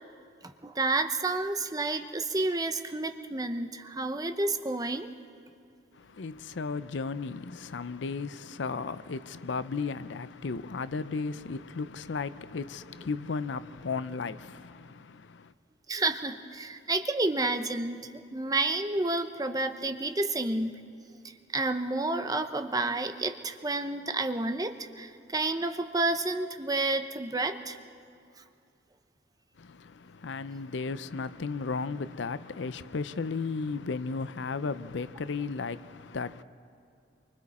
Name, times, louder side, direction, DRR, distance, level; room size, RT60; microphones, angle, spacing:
voice 1, 0.4-5.1 15.9-20.7 21.2-27.8, right 2 dB, 20° right, 0.8 m, -30 dB
voice 2, 5.9-15.5 29.6-36.4, left 4 dB, 70° left, 0.5 m, -35 dB
28.5 x 24.5 x 4.3 m
head